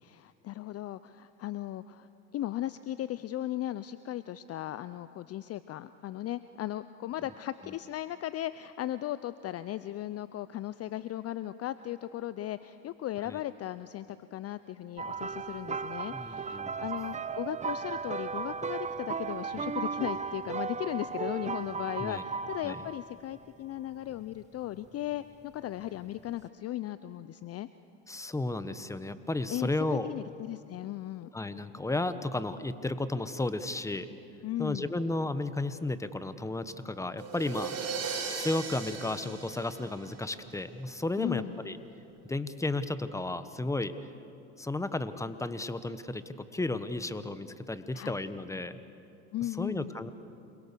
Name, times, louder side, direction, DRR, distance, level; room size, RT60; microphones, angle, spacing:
voice 1, 0.0-2.1 2.3-27.7 29.5-31.3 34.4-34.9 41.2-41.6 47.9-48.2 49.3-49.9, left 13 dB, 35° left, 14 dB, 0.6 m, -37 dB
sound 1, 15.0-23.2 24.1-24.3 26.2-26.3, right 5 dB, 15° right, 0.8 m, -36 dB
voice 2, 16.1-16.8 22.0-22.2 22.6-22.8 28.1-30.1 31.3-34.1 34.6-37.7 38.3-41.8 42.3-43.9 44.6-48.8 49.4-50.1, left 2 dB, 5° left, 12 dB, 1.2 m, -33 dB
sound 2, 37.2-40.5, right 5 dB, 40° right, 6.1 m, -37 dB
28.5 x 22.0 x 6.9 m, 2.7 s
hypercardioid pair, 85°, 41 cm